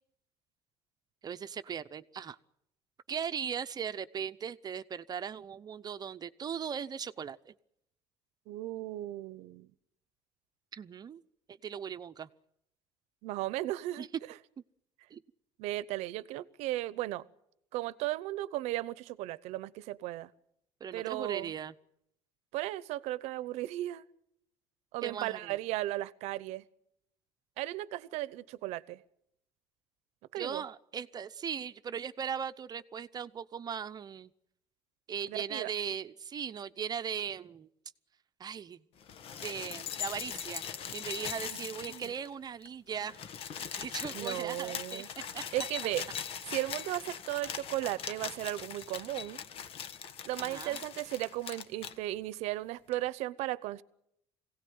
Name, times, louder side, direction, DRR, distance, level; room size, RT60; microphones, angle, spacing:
voice 1, 1.2-2.4 3.1-7.5 10.7-11.2 11.6-12.3 14.0-14.1 15.1-15.2 20.8-21.7 25.0-25.6 30.4-34.3 35.1-37.7 38.4-38.8 39.4-43.2 43.8-45.4 50.4-50.8, right 7 dB, 35° right, 11 dB, 0.8 m, -39 dB
voice 2, 8.5-9.7 13.2-14.1 15.6-17.3 17.7-20.3 20.9-21.5 22.5-24.0 24.9-26.6 27.6-29.0 30.3-30.6 35.3-35.7 41.5-42.1 44.1-45.1 45.5-46.0 46.5-49.4 50.3-53.8, right 16 dB, 80° right, 18 dB, 0.9 m, -36 dB
sound 1, 39.0-42.3 42.6-42.7 42.9-52.0 52.9-53.0, left 8 dB, 55° left, 1.4 m, -41 dB
23.0 x 17.5 x 9.5 m, 0.79 s
cardioid pair, 110°, 11 cm